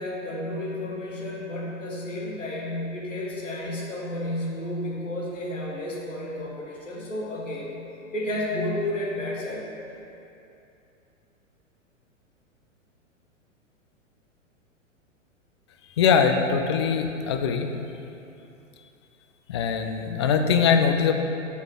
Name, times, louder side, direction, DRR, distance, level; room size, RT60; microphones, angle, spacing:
voice 1, 0.0-7.8 8.1-9.7, left 1 dB, 70° left, -4 dB, 2.1 m, -31 dB
voice 2, 16.0-17.7 19.5-21.1, left 6 dB, 25° left, 6 dB, 0.3 m, -22 dB
7.8 x 5.6 x 6.0 m, 2.7 s
figure-of-eight pair, 105°, 39 cm